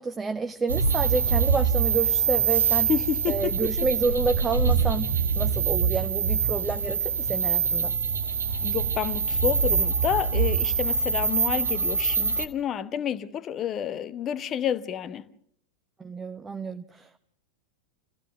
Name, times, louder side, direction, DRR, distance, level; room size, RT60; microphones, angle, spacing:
voice 1, 0.0-2.9 3.3-5.1 5.4-7.9 16.0-17.2, right 4 dB, 15° right, 0.8 m, -29 dB
sound 1, 0.7-12.5, right 6 dB, 75° right, 1.3 m, -24 dB
voice 2, 2.9-3.9 8.6-15.3, left 9 dB, 30° left, 1.1 m, -29 dB
28.0 x 15.5 x 6.2 m
figure-of-eight pair, 90°, 0 cm